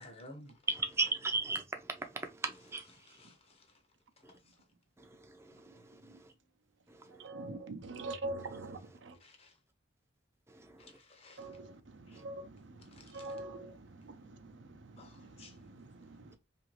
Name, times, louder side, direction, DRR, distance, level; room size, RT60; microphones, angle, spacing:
voice 1, 0.0-0.6 3.3-3.7 4.5-4.6 9.2-9.6 10.8-11.5 12.1-12.2 12.9-13.3 15.0-15.6, left 1 dB, 30° left, 0.6 m, -54 dB
voice 2, 0.7-3.3 4.2-4.3 5.0-6.3 6.9-7.3 8.6-9.0 10.5-11.0 12.1-12.2, right 3 dB, 15° right, 0.4 m, -38 dB
voice 3, 5.6-6.2 7.1-9.2 11.4-16.4, right 2 dB, 75° right, 0.5 m, -45 dB
2.8 x 2.6 x 3.0 m
head